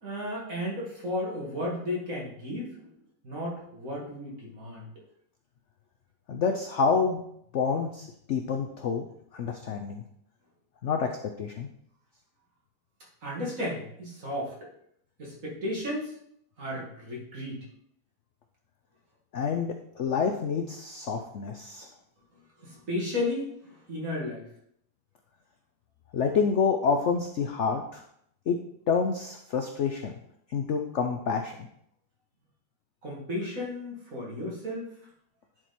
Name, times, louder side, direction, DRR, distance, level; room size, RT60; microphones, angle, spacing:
voice 1, 0.0-2.9 3.2-4.9 13.2-14.5 15.2-16.1 16.6-17.6 22.6-24.4 33.0-34.9, left 1 dB, 45° right, -4 dB, 2.7 m, -34 dB
voice 2, 6.3-7.2 7.5-9.1 9.3-10.0 10.8-11.7 19.3-21.9 26.1-28.0 28.5-28.6 28.9-30.1 30.5-31.6, left 5 dB, 70° left, 5 dB, 0.7 m, -28 dB
10.0 x 4.5 x 4.3 m, 0.71 s
omnidirectional pair, 2.0 m